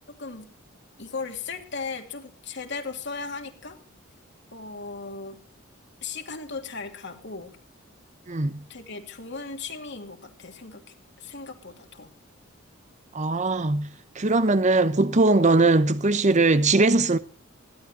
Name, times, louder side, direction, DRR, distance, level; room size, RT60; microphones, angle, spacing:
voice 1, 0.2-0.5 1.0-3.8 4.5-5.4 6.0-7.6 8.7-12.1, left 4 dB, 60° left, 2.9 m, -37 dB
voice 2, 8.3-8.6 13.1-13.9 14.2-17.2, right 2 dB, 35° right, 0.8 m, -20 dB
21.0 x 16.0 x 2.8 m
head